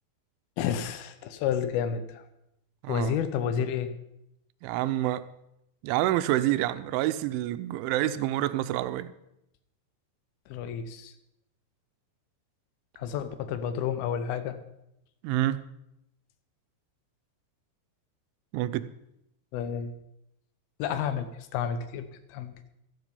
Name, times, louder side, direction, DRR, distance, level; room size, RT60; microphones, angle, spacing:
voice 1, 0.6-2.2 2.9-3.9 10.5-11.1 13.0-14.6 19.5-19.9 20.8-22.5, left 8 dB, 75° left, 10 dB, 2.3 m, -30 dB
voice 2, 2.8-3.2 4.6-5.3 5.8-9.1 15.2-15.7 18.5-18.9, right 14 dB, 90° right, 13 dB, 3.1 m, -27 dB
12.5 x 12.0 x 5.4 m, 0.82 s
omnidirectional pair, 5.3 m